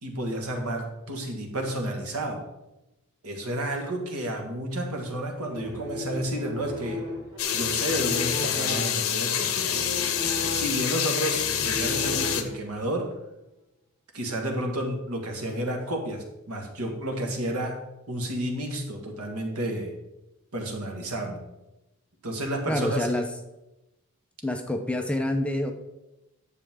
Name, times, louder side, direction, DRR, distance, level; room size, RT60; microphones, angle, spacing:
voice 1, 0.0-2.4 3.2-7.0 7.5-9.7 10.2-13.1 14.1-17.8 18.1-19.9 20.5-21.4 22.2-23.1, right 1 dB, 85° right, 2 dB, 1.8 m, -31 dB
sound 1, 5.4-12.9, left 1 dB, 20° right, 2.2 m, -36 dB
sound 2, 7.4-12.4, left 9 dB, 70° left, 0.8 m, -27 dB
voice 2, 22.7-23.3 24.4-25.7, left 1 dB, 5° left, 4 dB, 0.6 m, -27 dB
10.0 x 6.7 x 3.7 m, 0.96 s
head